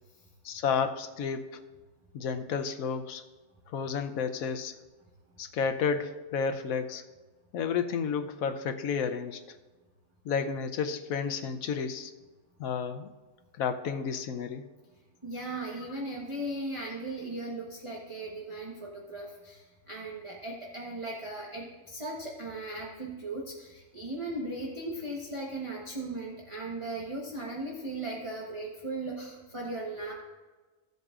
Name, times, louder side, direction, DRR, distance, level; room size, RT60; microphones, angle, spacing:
voice 1, 0.4-1.6 2.1-3.2 3.7-4.7 5.4-7.0 7.5-9.4 10.2-12.1 12.6-13.1 13.6-14.7, left 6 dB, 90° left, 7 dB, 1.1 m, -31 dB
voice 2, 15.2-30.1, right 2 dB, 25° right, -4 dB, 1.1 m, -37 dB
16.0 x 8.0 x 2.4 m, 1.3 s
omnidirectional pair, 1.4 m